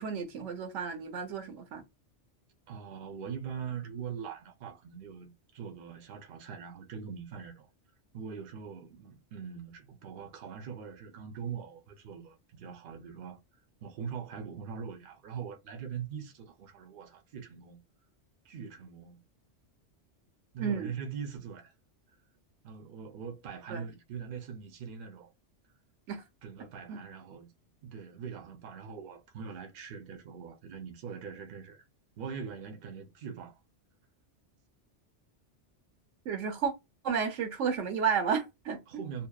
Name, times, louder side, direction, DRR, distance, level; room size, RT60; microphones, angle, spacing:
voice 1, 0.0-1.8 20.6-20.9 23.7-23.8 26.1-26.2 26.9-27.0 36.3-36.7 37.0-38.8, right 6 dB, 85° right, 1.0 m, -32 dB
voice 2, 2.7-7.7 8.1-13.4 13.8-17.8 18.4-19.2 20.5-21.7 22.6-25.3 26.4-27.5 27.8-31.8 32.2-33.6 38.9-39.3, right 7 dB, 55° right, 0.6 m, -42 dB
2.6 x 2.1 x 2.2 m
omnidirectional pair, 1.2 m